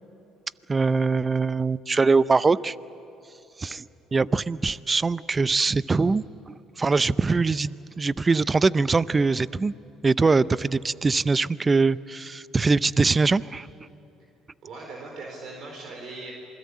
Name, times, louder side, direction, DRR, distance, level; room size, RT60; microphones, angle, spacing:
voice 1, 0.7-2.7 3.6-9.7 10.0-13.7, right 4 dB, 25° right, 18 dB, 0.6 m, -23 dB
voice 2, 14.6-16.3, right 3 dB, 60° right, 1 dB, 4.4 m, -39 dB
27.0 x 21.5 x 8.6 m, 2.9 s
hypercardioid pair, 65°, 0 cm